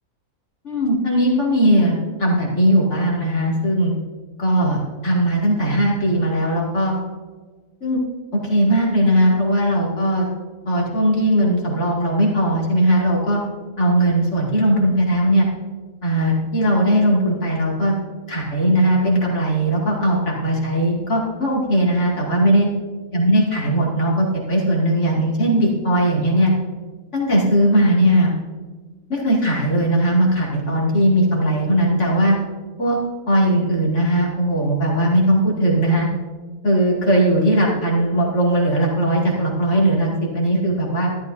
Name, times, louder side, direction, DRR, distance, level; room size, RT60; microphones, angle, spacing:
voice 1, 0.6-3.9 4.4-6.9 7.8-8.0 8.3-10.3 10.7-13.4 13.8-15.5 16.0-17.9 18.3-22.7 23.1-26.5 27.1-28.3 29.1-32.4 32.8-33.0 33.3-36.1 36.6-41.1, right 1 dB, 60° left, -3 dB, 2.7 m, -18 dB
14.0 x 12.5 x 2.6 m, 1.4 s
omnidirectional pair, 1.4 m